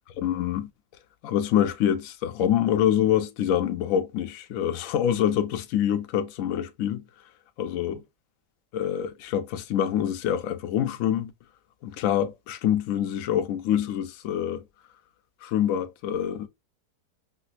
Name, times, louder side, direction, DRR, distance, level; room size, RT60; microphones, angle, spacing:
voice 1, 0.2-0.7 1.2-7.0 7.6-8.0 8.7-11.3 11.8-14.6 15.4-16.5, left 10 dB, 70° left, 0.9 m, -25 dB
4.8 x 2.1 x 2.4 m
omnidirectional pair, 1.6 m